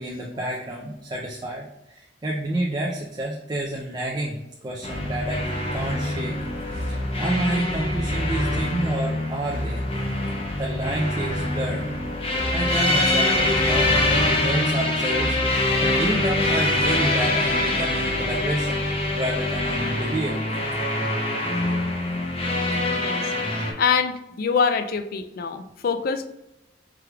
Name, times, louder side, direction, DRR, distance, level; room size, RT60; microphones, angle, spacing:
voice 1, 0.0-4.4 4.6-5.4 5.7-6.4 6.8-9.8 10.6-11.9 12.5-18.9 19.1-20.4, right 1 dB, 25° right, -2 dB, 0.5 m, -29 dB
sound 1, 4.8-23.7, left 1 dB, 35° left, 0.7 m, -24 dB
voice 2, 22.9-26.3, left 6 dB, 55° left, 9 dB, 0.3 m, -25 dB
4.7 x 3.3 x 2.3 m, 0.92 s
head